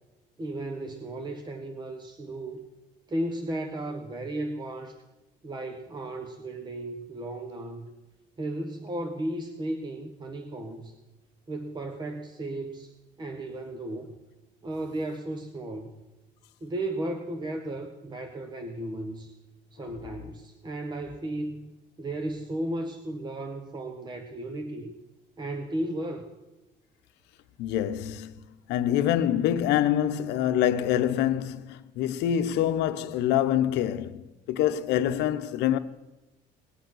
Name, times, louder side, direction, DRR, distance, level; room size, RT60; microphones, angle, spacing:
voice 1, 0.4-2.6 3.1-5.0 5.4-7.9 8.4-10.9 11.5-12.9 13.2-14.1 14.6-16.0 16.6-19.3 19.7-21.7 22.0-24.9 25.4-26.3, right 1 dB, 25° right, 1.2 m, -35 dB
voice 2, 27.6-28.3 28.7-35.8, left 11 dB, 90° left, 0.8 m, -25 dB
20.0 x 8.1 x 6.2 m
cardioid pair, 110°, 17 cm